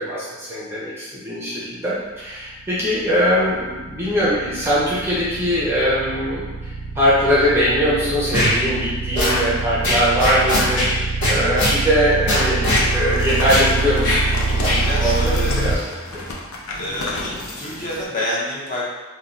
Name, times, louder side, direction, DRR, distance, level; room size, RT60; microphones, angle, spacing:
voice 1, 0.0-6.4 7.0-10.8 11.3-12.6 12.9-14.2 15.0-15.8 16.1-16.2, equal, 10° right, -8 dB, 0.4 m, -21 dB
sound 1, 2.5-15.8, right 3 dB, 85° right, 0.4 m, -25 dB
sound 2, 8.3-8.6 9.1-9.4 9.8-10.9 11.2-11.8 12.3-12.9 13.5-13.7 14.0-14.2 14.6-14.8, left 1 dB, 55° left, 0.9 m, -20 dB
voice 2, 10.7-11.1 14.8-15.6 16.7-18.8, equal, 35° left, -6 dB, 0.6 m, -28 dB
sound 3, 12.7-18.0, left 2 dB, 80° left, 0.4 m, -31 dB
3.0 x 2.1 x 2.5 m, 1.2 s
head